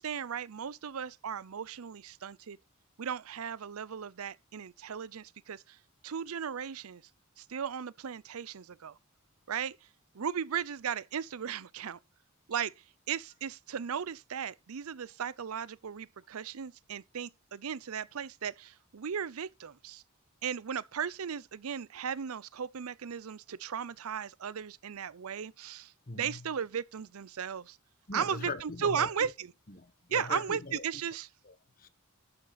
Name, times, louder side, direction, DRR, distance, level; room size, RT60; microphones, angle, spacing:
voice 1, 0.0-2.6 3.0-5.8 6.0-7.0 7.4-8.9 9.5-9.8 10.1-12.0 12.5-12.7 13.1-20.0 20.4-27.8 28.1-29.5 30.1-31.3, right 7 dB, 80° right, 0.6 m, -36 dB
voice 2, 26.1-26.5 28.1-29.3 29.7-30.8 31.4-31.9, left 3 dB, 40° left, 1.2 m, -41 dB
11.5 x 7.6 x 4.0 m
head